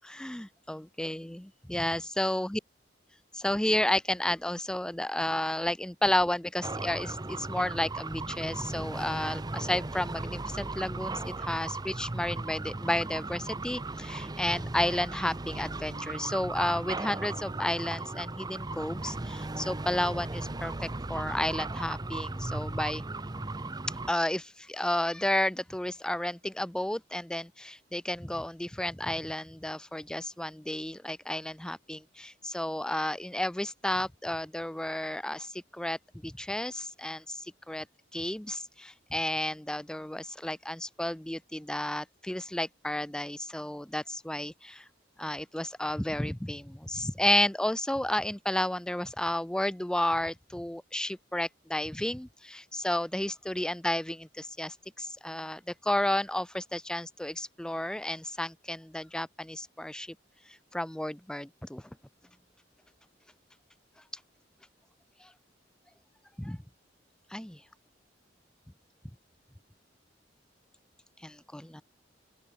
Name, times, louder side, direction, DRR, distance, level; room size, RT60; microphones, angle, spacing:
voice 1, 0.0-2.6 3.3-23.0 24.1-36.0 36.2-37.8 38.1-44.8 45.2-60.1 60.7-61.8 65.2-65.3 66.4-66.6 67.3-67.6 71.2-71.8, left 1 dB, 5° left, 0.3 m, -32 dB
sound 1, 6.6-24.1, right 2 dB, 20° right, 0.8 m, -37 dB
sound 2, 14.7-21.5, equal, 40° right, 6.2 m, -51 dB
open air
head